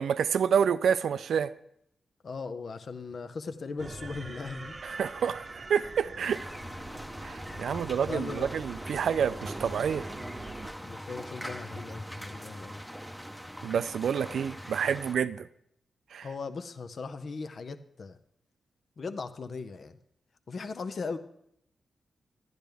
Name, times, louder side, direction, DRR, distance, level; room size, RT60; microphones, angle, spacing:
voice 1, 0.0-1.5 4.8-6.5 7.2-10.1 13.6-15.5 16.1-16.3, right 7 dB, 80° right, 0.3 m, -28 dB
voice 2, 2.2-4.8 7.5-8.5 10.8-12.8 16.2-18.2 19.0-20.0 20.5-21.2, left 4 dB, 60° left, 0.6 m, -38 dB
sound 1, 3.8-10.7, right 3 dB, 40° right, 0.7 m, -43 dB
sound 2, 6.2-15.2, equal, 5° left, 0.8 m, -42 dB
10.5 x 10.5 x 3.4 m
cardioid pair, 50°, 0 cm